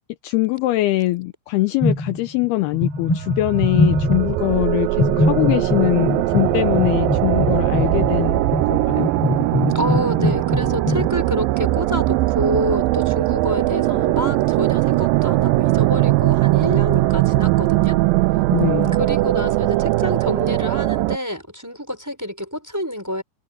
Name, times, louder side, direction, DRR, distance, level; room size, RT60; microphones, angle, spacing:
voice 1, 0.2-9.1 18.5-19.0, left 18 dB, 75° left, 2.6 m, -22 dB
sound 1, 1.8-2.5 2.7-4.5 4.9-11.1, left 2 dB, 35° left, 4.1 m, -23 dB
sound 2, 3.1-21.2, right 18 dB, 90° right, 2.0 m, -20 dB
voice 2, 9.7-18.0 19.0-23.2, equal, 5° right, 5.6 m, -27 dB
omnidirectional pair, 4.8 m